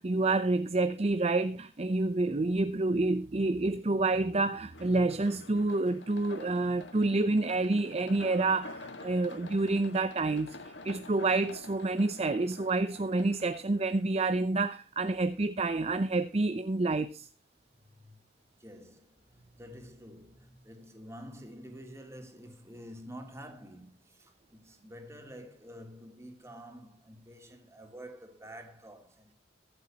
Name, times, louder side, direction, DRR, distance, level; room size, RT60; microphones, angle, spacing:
voice 1, 0.0-17.3, right 2 dB, 35° right, 0.6 m, -28 dB
sound 1, 4.7-14.2, left 3 dB, 85° left, 1.7 m, -48 dB
voice 2, 17.9-18.2 18.6-29.3, equal, 15° right, 3.0 m, -49 dB
23.0 x 7.8 x 2.9 m
head